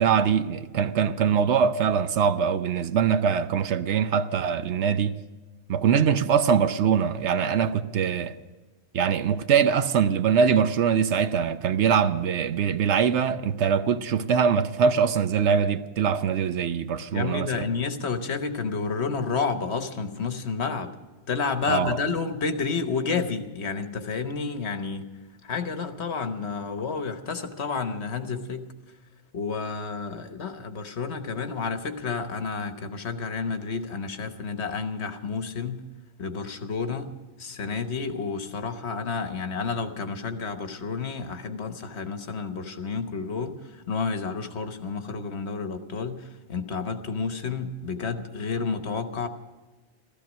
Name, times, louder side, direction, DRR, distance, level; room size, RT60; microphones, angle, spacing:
voice 1, 0.0-5.1 5.7-8.3 8.9-17.7 21.7-22.0, right 7 dB, 75° right, 1.0 m, -23 dB
voice 2, 17.1-21.0 21.3-25.1 25.4-28.7 29.3-35.9 36.2-49.3, left 5 dB, 70° left, 1.3 m, -30 dB
15.0 x 14.0 x 6.2 m
omnidirectional pair, 1.2 m